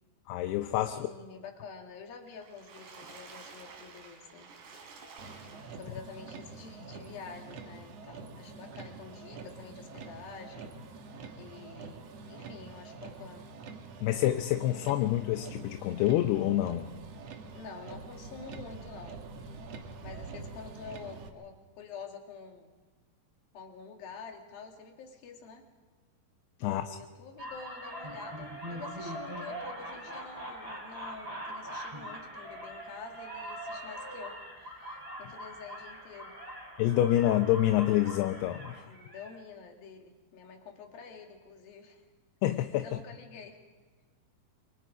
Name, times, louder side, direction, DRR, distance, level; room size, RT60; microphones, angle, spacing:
voice 1, 0.3-1.1 14.0-16.9 26.6-26.8 36.8-38.8 42.4-43.0, left 13 dB, 80° left, 8 dB, 2.7 m, -27 dB
voice 2, 0.8-4.5 5.7-10.7 11.4-13.5 17.5-19.2 20.0-22.8 23.5-25.7 26.6-36.4 38.8-42.0 42.8-43.6, left 5 dB, 60° left, 2 dB, 3.9 m, -48 dB
Water / Splash splatter, 2.3-6.1 6.7-6.8 7.1-7.2, right 4 dB, 80° right, 5.2 m, -50 dB
Motor vehicle (road), 5.2-21.3, right 4 dB, 60° right, 1.8 m, -46 dB
sound 1, 27.4-39.4, equal, 5° right, 3.2 m, -42 dB
27.0 x 24.0 x 5.1 m, 1.3 s
omnidirectional pair, 5.0 m